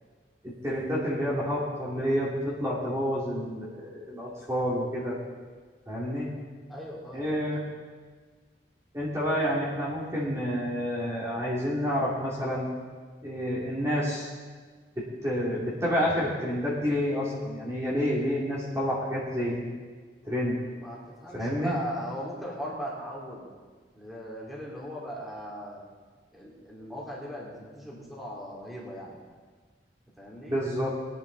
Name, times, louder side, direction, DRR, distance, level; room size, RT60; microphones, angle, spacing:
voice 1, 0.4-5.2 5.9-6.3 7.1-7.6 8.9-12.7 13.2-14.3 15.0-19.7 20.2-20.6 21.3-21.7 30.5-30.9, equal, 15° right, -7 dB, 2.7 m, -29 dB
voice 2, 6.7-7.3 20.8-23.4 23.9-25.8 26.3-29.1 30.2-30.5, equal, ahead, -5 dB, 3.0 m, -38 dB
20.0 x 10.5 x 4.0 m, 1.5 s
head